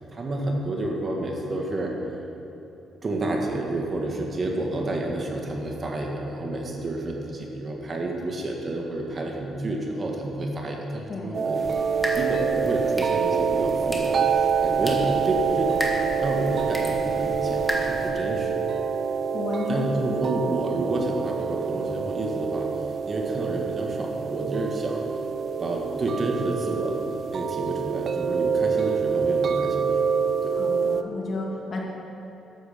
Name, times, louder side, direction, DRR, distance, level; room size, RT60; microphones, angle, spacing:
voice 1, 0.0-1.9 3.0-11.7 12.1-18.6 19.7-22.7 23.1-25.1 25.6-27.0 27.3-30.2 30.4-30.6, right 2 dB, 35° right, 0 dB, 1.8 m, -30 dB
sound 1, 11.3-31.0, right 6 dB, 50° right, 0.6 m, -26 dB
sound 2, 11.5-18.1, equal, 5° left, 1.8 m, -35 dB
voice 2, 19.3-19.9 30.5-31.8, left 3 dB, 50° left, -1 dB, 2.1 m, -32 dB
12.5 x 8.0 x 5.2 m, 2.9 s
cardioid pair, 90°, 0 cm